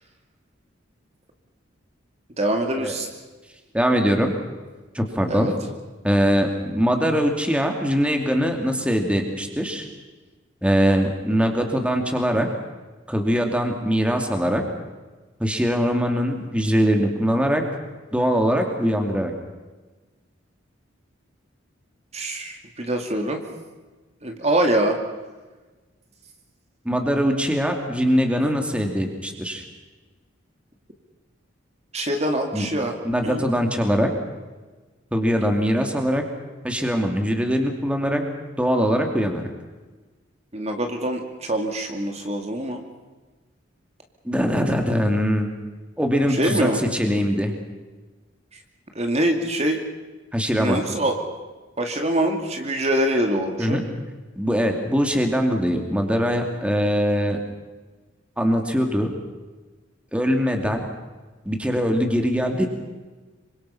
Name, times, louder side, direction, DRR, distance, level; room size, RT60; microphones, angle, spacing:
voice 1, 2.4-3.1 5.3-5.5 22.1-23.4 24.2-25.0 31.9-33.0 33.2-33.4 40.5-42.8 46.3-46.8 48.9-49.8 50.6-51.2 51.8-53.8, right 1 dB, 35° right, 3 dB, 2.4 m, -24 dB
voice 2, 3.7-4.3 4.9-5.5 6.0-9.9 10.6-12.5 13.1-14.6 15.4-17.6 18.1-19.3 26.8-29.6 32.5-32.7 33.0-34.1 35.1-36.2 36.6-38.2 38.6-39.5 44.2-45.5 46.0-47.5 50.3-50.8 53.6-53.8 54.3-57.4 58.4-59.1 60.1-60.8 61.5-62.7, equal, 5° right, 3 dB, 2.6 m, -22 dB
26.5 x 25.0 x 5.8 m, 1.3 s
head